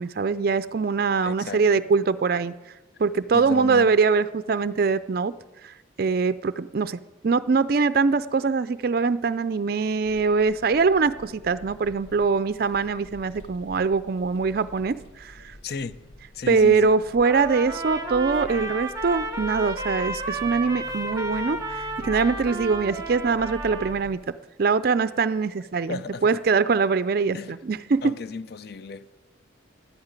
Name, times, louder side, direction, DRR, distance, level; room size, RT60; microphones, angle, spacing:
voice 1, 0.0-2.5 3.0-5.3 5.6-15.5 16.5-24.3 24.6-28.1, right 4 dB, 50° right, 0.4 m, -23 dB
voice 2, 1.2-1.9 3.3-4.0 15.6-16.0 16.3-16.9 25.9-26.4 27.3-27.6 28.0-29.1, left 4 dB, 55° left, 0.5 m, -35 dB
sound 1, 10.0-24.1, left 1 dB, 70° left, 1.0 m, -46 dB
Trumpet, 17.2-24.0, right 2 dB, 20° right, 1.1 m, -32 dB
11.0 x 8.8 x 8.9 m
head